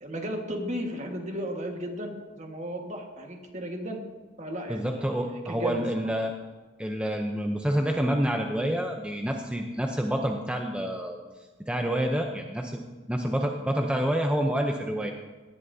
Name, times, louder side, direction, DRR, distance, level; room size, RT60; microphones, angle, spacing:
voice 1, 0.0-4.0 4.4-6.1, equal, 40° right, 2 dB, 1.7 m, -35 dB
voice 2, 4.7-6.3 6.8-11.2 11.7-12.8 13.1-15.1, equal, 5° right, 2 dB, 0.6 m, -28 dB
18.0 x 11.5 x 2.7 m, 1.3 s
head